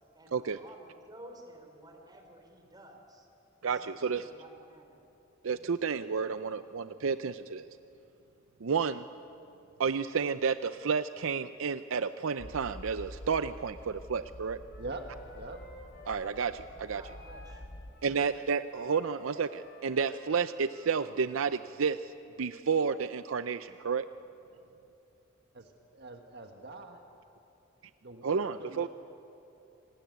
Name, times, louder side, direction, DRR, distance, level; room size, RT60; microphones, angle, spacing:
voice 1, 0.1-3.3 3.6-5.0 16.9-17.7, right 1 dB, 20° right, 3 dB, 3.9 m, -53 dB
voice 2, 3.6-4.2 5.4-7.7 8.6-9.0 9.8-14.6 16.1-17.0 18.0-22.0 22.4-24.0 28.2-28.9, right 5 dB, 80° right, 12 dB, 0.6 m, -31 dB
sound 1, 12.4-17.9, left 1 dB, 75° left, 2.9 m, -48 dB
Wind instrument woodwind instrument, 14.7-17.6 17.9-21.1, left 2 dB, 55° left, 6.6 m, -52 dB
voice 3, 25.5-27.0 28.0-28.9, right 2 dB, 55° right, 4 dB, 1.5 m, -43 dB
26.5 x 20.0 x 9.4 m, 2.8 s
head